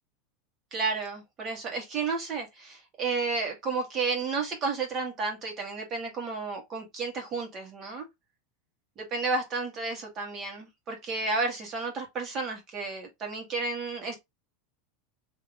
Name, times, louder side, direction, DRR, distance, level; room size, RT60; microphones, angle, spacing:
voice 1, 0.7-8.1 9.0-14.2, right 4 dB, 25° right, 1.3 m, -32 dB
3.6 x 2.8 x 3.5 m
supercardioid pair, 160°, 0 cm